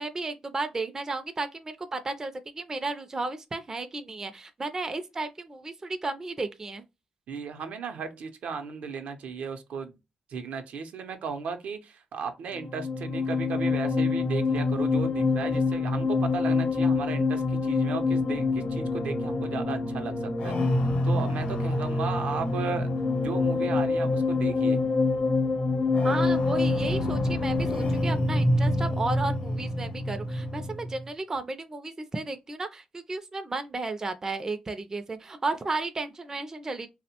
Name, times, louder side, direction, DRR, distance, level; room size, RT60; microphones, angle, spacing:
voice 1, 0.0-6.8 26.0-36.9, right 3 dB, 25° right, 0.4 m, -33 dB
voice 2, 7.3-10.0 10.3-20.8 21.0-22.9 23.2-24.8, right 5 dB, 75° right, 0.5 m, -35 dB
sound 1, 12.5-31.0, left 3 dB, 65° left, 0.8 m, -26 dB
2.7 x 2.0 x 2.8 m
cardioid pair, 100°, 2 cm